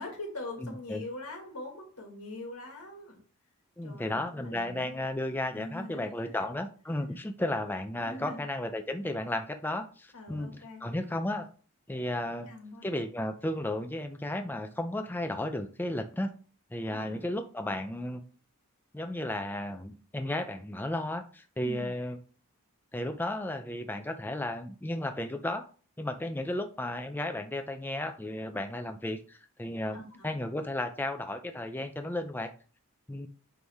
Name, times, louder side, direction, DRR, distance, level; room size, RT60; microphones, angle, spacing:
voice 1, 0.0-3.2 3.8-5.1 5.5-6.5 8.0-8.4 10.1-10.8 12.3-12.9 16.9-17.2 21.6-21.9 29.9-30.3, left 2 dB, 85° left, 1 dB, 2.1 m, -43 dB
voice 2, 0.6-1.1 3.8-11.5 11.9-12.5 12.8-16.3 16.7-18.2 18.9-22.2 22.9-25.6 26.0-32.5 33.1-33.3, left 1 dB, 10° left, 6 dB, 0.4 m, -34 dB
9.3 x 3.3 x 3.5 m, 0.39 s
head